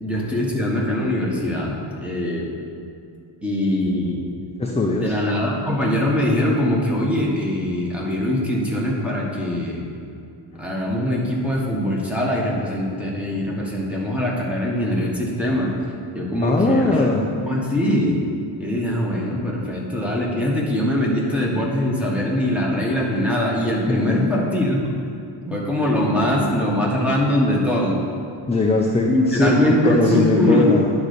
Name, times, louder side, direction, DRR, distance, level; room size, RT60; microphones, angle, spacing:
voice 1, 0.0-2.5 3.4-4.2 5.0-9.8 10.6-15.7 16.1-17.1 17.4-18.2 18.6-24.8 25.4-28.0 29.1-30.7, left 1 dB, 5° right, -3 dB, 1.4 m, -22 dB
voice 2, 4.6-5.1 16.4-17.3 23.9-24.3 28.5-30.9, left 2 dB, 15° left, -1 dB, 0.5 m, -20 dB
9.8 x 4.1 x 6.8 m, 2.5 s
cardioid pair, 130°, 49 cm